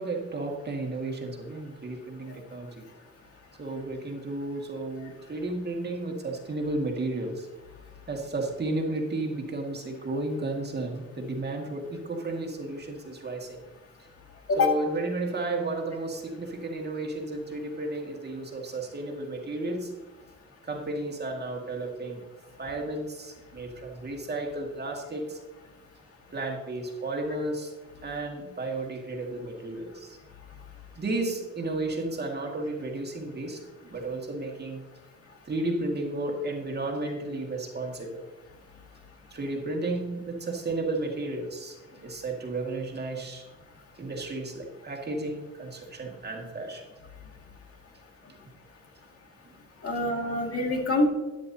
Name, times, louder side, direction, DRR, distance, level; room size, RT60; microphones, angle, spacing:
voice 1, 0.0-2.9 3.6-7.5 8.1-13.6 14.6-19.9 20.6-22.2 22.6-25.4 26.3-27.7 28.0-30.2 31.0-33.6 33.9-34.8 35.5-38.2 39.3-41.8 42.0-43.4 44.0-46.8, right 2 dB, 35° right, 1 dB, 2.1 m, -33 dB
voice 2, 49.8-51.1, left 2 dB, 50° left, 1 dB, 2.2 m, -25 dB
12.5 x 9.7 x 2.8 m, 1.2 s
cardioid pair, 90°, 30 cm